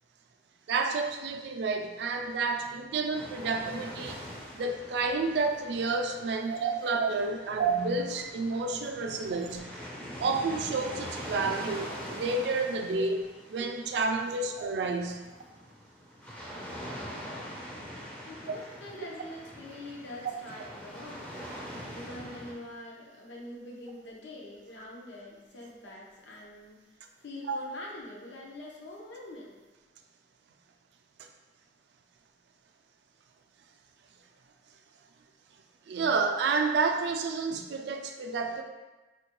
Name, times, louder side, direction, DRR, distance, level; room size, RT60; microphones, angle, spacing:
voice 1, 0.7-4.2 4.5-9.7 10.2-15.2 27.5-27.6 35.9-38.6, right 4 dB, 70° right, 5 dB, 0.3 m, -30 dB
sound 1, 3.1-22.5, equal, 5° left, 0.4 m, -43 dB
voice 2, 6.3-6.9 7.4-7.5 9.1-9.2 13.0-13.1 18.3-29.6, left 1 dB, 80° left, -3 dB, 0.7 m, -45 dB
3.8 x 2.2 x 2.9 m, 1.1 s
head